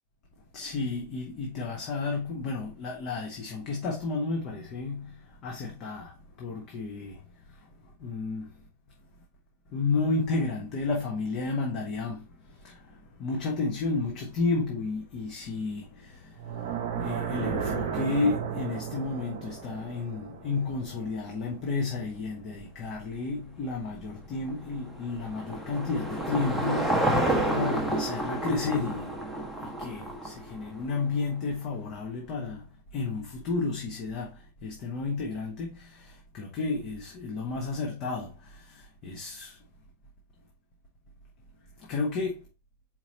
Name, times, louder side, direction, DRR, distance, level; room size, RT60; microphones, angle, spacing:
voice 1, 0.5-8.6 9.7-39.6 41.8-42.4, left 3 dB, 40° left, 1.0 m, -32 dB
sound 1, 16.3-21.5, right 7 dB, 50° right, 0.7 m, -34 dB
Car passing by / Engine, 24.4-30.9, right 1 dB, ahead, 0.9 m, -30 dB
4.4 x 4.1 x 2.8 m
figure-of-eight pair, 90°, 0 cm